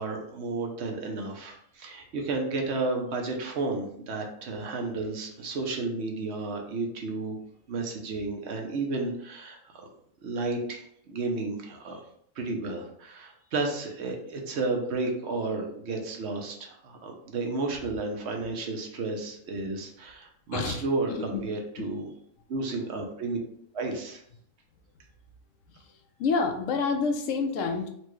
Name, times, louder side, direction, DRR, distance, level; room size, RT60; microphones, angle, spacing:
voice 1, 0.0-7.4 7.7-9.9 10.2-12.0 12.4-22.1 22.5-23.4 23.7-24.2, right 3 dB, 65° right, 2 dB, 0.9 m, -32 dB
voice 2, 20.5-20.8 21.1-21.4 21.8-21.9 26.2-27.9, left 4 dB, 90° left, 5 dB, 1.0 m, -28 dB
4.3 x 2.2 x 3.0 m, 0.68 s
omnidirectional pair, 1.3 m